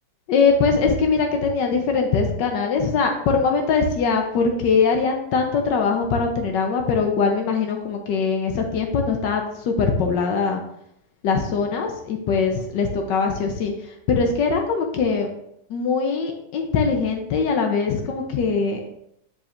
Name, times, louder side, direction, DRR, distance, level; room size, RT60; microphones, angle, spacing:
voice 1, 0.3-10.6 11.2-13.7 14.1-15.3 15.7-18.8, left 5 dB, 85° left, 3 dB, 1.5 m, -22 dB
7.4 x 7.0 x 2.5 m, 0.75 s
omnidirectional pair, 1.9 m